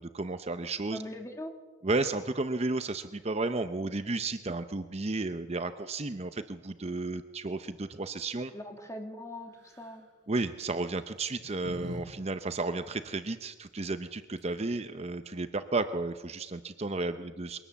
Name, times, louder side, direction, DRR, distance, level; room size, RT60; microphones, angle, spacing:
voice 1, 0.0-1.0 1.8-8.5 10.3-17.6, right 3 dB, 35° right, 10 dB, 0.7 m, -33 dB
voice 2, 0.9-1.5 8.5-10.1, left 1 dB, 15° left, 4 dB, 2.4 m, -41 dB
sound 1, 9.6-10.0 10.9-12.0 12.3-12.4 14.1-14.2 14.4-14.8, equal, 65° right, 6.1 m, -45 dB
22.5 x 18.0 x 7.2 m, 1.3 s
head